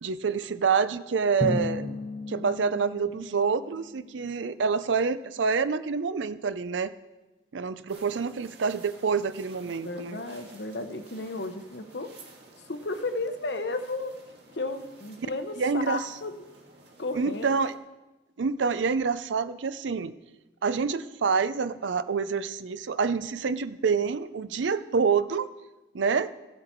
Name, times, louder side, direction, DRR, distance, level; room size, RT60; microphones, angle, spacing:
voice 1, 0.0-2.0 2.3-6.9 7.5-10.2 15.6-16.0 17.2-17.7 18.4-20.1 20.6-25.5 25.9-26.3, right 5 dB, 90° right, 14 dB, 0.5 m, -27 dB
Drum, 1.4-4.1, left 2 dB, 35° left, 0.9 m, -34 dB
sound 1, 7.9-17.8, right 2 dB, 70° right, 1.8 m, -53 dB
voice 2, 9.8-12.1 12.7-14.1 14.5-16.5 17.0-17.5, left 2 dB, 70° left, 8 dB, 0.9 m, -33 dB
15.0 x 7.6 x 4.5 m, 1.1 s
head